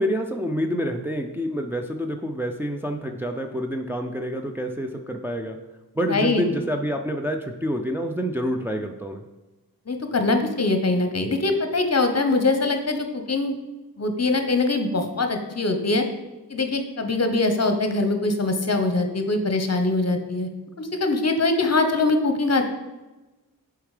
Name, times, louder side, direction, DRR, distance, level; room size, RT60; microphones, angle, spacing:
voice 1, 0.0-5.6 5.9-9.2, equal, 5° right, 3 dB, 0.5 m, -27 dB
voice 2, 6.1-6.4 9.9-13.6 14.0-16.0 16.5-20.5 20.8-22.7, left 2 dB, 40° left, 6 dB, 1.0 m, -23 dB
6.9 x 4.8 x 5.0 m, 1.1 s
wide cardioid pair, 75°, 37 cm